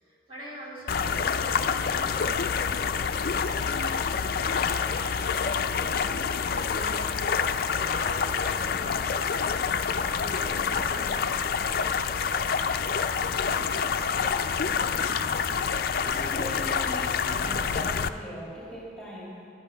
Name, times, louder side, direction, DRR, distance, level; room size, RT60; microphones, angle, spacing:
voice 1, 0.0-2.4 3.1-9.5 10.1-11.8, left 1 dB, 30° right, -6 dB, 3.3 m, -44 dB
sound 1, 0.9-18.1, left 6 dB, 50° left, 0.4 m, -27 dB
voice 2, 16.0-19.4, left 1 dB, 5° left, -7 dB, 2.3 m, -40 dB
11.5 x 10.5 x 5.9 m, 2.6 s
head